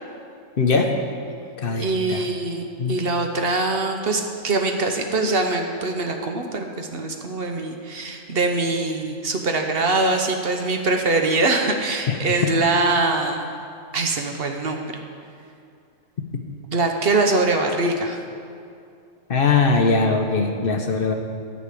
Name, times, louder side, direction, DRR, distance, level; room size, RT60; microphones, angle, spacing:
voice 1, 0.6-0.9 1.6-2.2 2.8-3.0 12.1-12.2 19.3-21.1, left 4 dB, 55° left, 4 dB, 0.9 m, -20 dB
voice 2, 1.8-13.5 13.9-15.0 16.7-18.2, right 3 dB, 55° right, 3 dB, 1.0 m, -23 dB
11.0 x 5.3 x 8.3 m, 2.4 s
omnidirectional pair, 1.3 m